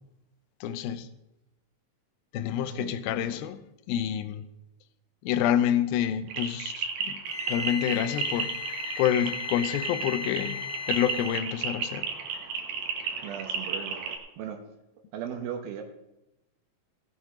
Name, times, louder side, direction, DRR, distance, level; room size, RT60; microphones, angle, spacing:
voice 1, 0.6-1.1 2.3-4.5 5.2-7.2 7.5-10.6 10.9-12.1, left 10 dB, 85° left, 2.6 m, -28 dB
voice 2, 2.7-3.0 13.2-14.0 14.4-14.6 15.1-15.8, right 8 dB, 85° right, 2.9 m, -37 dB
sound 1, 6.3-14.2, right 5 dB, 70° right, 2.8 m, -33 dB
Wind instrument woodwind instrument, 7.3-11.5, left 7 dB, 55° left, 2.3 m, -37 dB
16.5 x 8.3 x 5.1 m
omnidirectional pair, 4.1 m